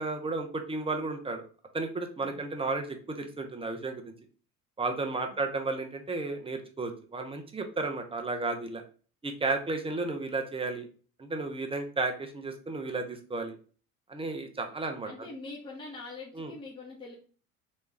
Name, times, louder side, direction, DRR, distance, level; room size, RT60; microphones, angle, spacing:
voice 1, 0.0-1.4 1.7-4.0 4.8-8.8 9.2-10.8 11.2-13.5 14.1-15.3 16.4-16.5, right 3 dB, 15° right, 5 dB, 0.7 m, -33 dB
voice 2, 15.0-17.1, left 3 dB, 10° left, -4 dB, 1.1 m, -44 dB
3.2 x 3.2 x 3.2 m, 0.39 s
hypercardioid pair, 65°, 42 cm